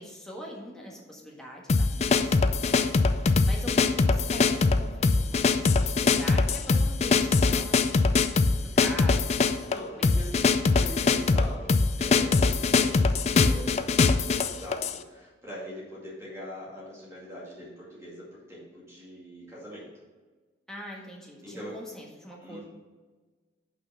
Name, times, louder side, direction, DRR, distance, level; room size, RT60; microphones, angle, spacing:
voice 1, 0.0-10.5 20.7-22.6, equal, 5° left, -3 dB, 1.4 m, -44 dB
sound 1, 1.7-15.0, left 4 dB, 35° left, 0.3 m, -23 dB
voice 2, 9.7-19.9 21.4-21.8 22.4-22.6, equal, 15° right, -7 dB, 2.2 m, -43 dB
6.0 x 5.6 x 5.7 m, 1.4 s
head